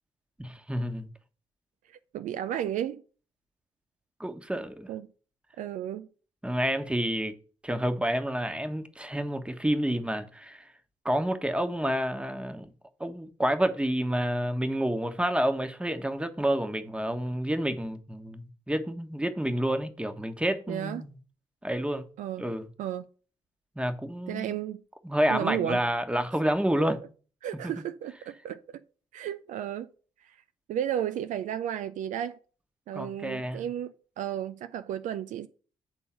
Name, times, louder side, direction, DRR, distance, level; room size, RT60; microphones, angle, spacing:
voice 1, 0.4-1.1 4.2-4.9 6.4-7.3 7.6-10.6 11.0-12.7 13.0-21.1 21.6-22.1 22.4-22.6 23.8-24.6 25.0-27.0 27.6-27.7 32.9-33.7, equal, 5° right, 1.2 m, -29 dB
voice 2, 1.9-3.0 4.9-5.0 5.6-6.1 20.7-21.0 22.2-22.5 22.8-23.1 24.3-24.8 25.3-25.8 27.4-28.8 29.1-29.9 30.2-30.4 30.7-32.4 32.9-35.5, right 10 dB, 60° right, 0.4 m, -33 dB
8.9 x 3.8 x 5.8 m
hypercardioid pair, 40°, 15 cm